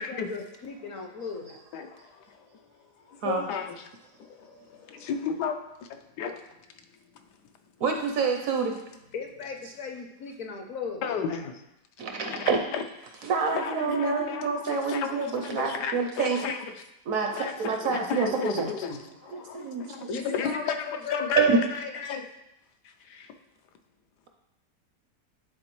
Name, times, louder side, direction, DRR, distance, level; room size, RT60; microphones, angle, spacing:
voice 1, 0.0-1.6 9.1-11.1 20.1-21.9, left 5 dB, 60° left, 1.0 m, -37 dB
voice 2, 1.7-2.6 3.0-3.9 4.2-6.4 7.1-7.4 11.0-11.6 12.2-12.8 13.5-16.7 17.3-22.3 22.8-23.3, left 6 dB, 80° left, 1.2 m, -34 dB
voice 3, 7.8-8.8 12.0-12.6 13.2-16.4 17.1-18.7 19.3-20.1 21.4-21.6, right 5 dB, 65° right, 0.9 m, -27 dB
10.5 x 3.8 x 3.0 m
omnidirectional pair, 1.8 m